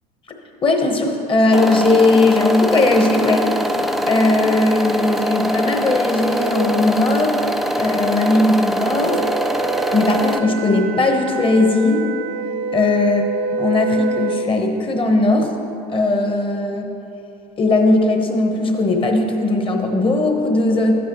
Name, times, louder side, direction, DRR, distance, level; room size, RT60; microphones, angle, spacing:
voice 1, 0.6-3.5 4.1-7.3 7.8-9.2 9.9-12.0 12.7-13.2 13.5-15.5 15.9-16.9 17.6-20.9, left 2 dB, 25° left, 3 dB, 1.1 m, -18 dB
sound 1, 1.5-10.4, equal, ahead, 0.3 m, -22 dB
Wind instrument woodwind instrument, 9.1-14.5, right 4 dB, 80° right, 0.4 m, -27 dB
11.5 x 8.3 x 3.1 m, 3.0 s
supercardioid pair, 95°, 21 cm